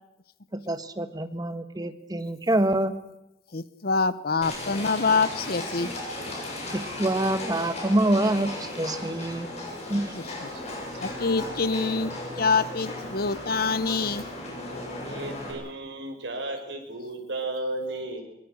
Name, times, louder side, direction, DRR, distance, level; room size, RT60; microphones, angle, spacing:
voice 1, 0.7-2.9 6.7-9.5 9.9-10.1, right 1 dB, 20° right, 10 dB, 1.4 m, -26 dB
voice 2, 3.5-5.9 10.1-10.5 11.0-14.2, left 4 dB, 55° left, 15 dB, 0.9 m, -26 dB
Livestock farm animals working animals, 4.4-15.5, left 2 dB, 40° left, 7.3 m, -36 dB
voice 3, 15.0-18.2, right 2 dB, 80° right, 3 dB, 5.2 m, -34 dB
24.0 x 22.0 x 6.5 m, 0.88 s
head